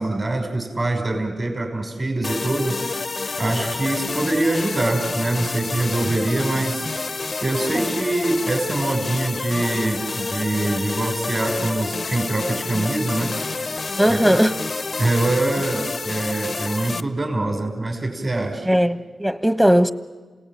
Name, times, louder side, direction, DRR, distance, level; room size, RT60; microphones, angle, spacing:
voice 1, 0.0-2.8 3.4-13.4 14.1-14.2 15.0-18.7, right 2 dB, 40° right, 5.7 m, -24 dB
sound 1, 2.2-17.0, left 3 dB, 50° left, 0.7 m, -29 dB
voice 2, 14.0-14.5 18.6-19.9, equal, 5° right, 1.3 m, -18 dB
28.5 x 18.0 x 9.3 m
cardioid pair, 45°, 0 cm